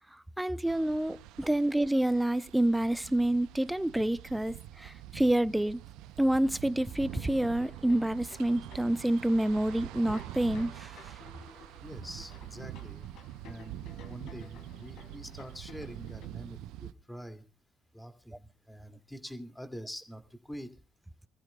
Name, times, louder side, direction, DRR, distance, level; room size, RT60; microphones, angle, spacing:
voice 1, 0.4-5.8 6.2-11.2, right 1 dB, 10° right, 0.6 m, -28 dB
sound 1, 0.7-16.9, right 14 dB, 75° right, 0.6 m, -45 dB
sound 2, 7.0-16.3, left 5 dB, 65° left, 2.8 m, -55 dB
voice 2, 11.8-17.4 17.9-20.7, equal, 10° left, 2.4 m, -45 dB
26.5 x 15.0 x 2.3 m
hypercardioid pair, 60°, 0 cm